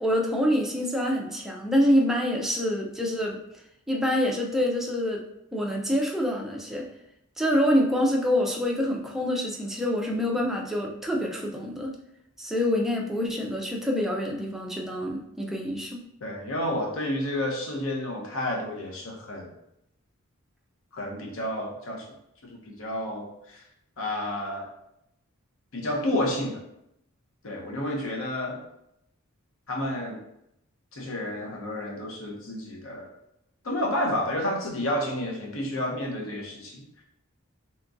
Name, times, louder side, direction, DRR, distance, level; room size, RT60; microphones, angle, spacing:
voice 1, 0.0-3.4 3.9-5.2 5.5-6.8 7.4-12.0 12.4-16.0, equal, ahead, -1 dB, 0.3 m, -26 dB
voice 2, 16.2-19.5 20.9-22.1 22.5-23.6 24.0-24.7 25.7-26.6 27.4-28.6 29.7-30.2 30.9-33.1 33.6-37.0, left 1 dB, 65° left, 0 dB, 0.6 m, -30 dB
2.8 x 2.4 x 2.5 m, 0.79 s
head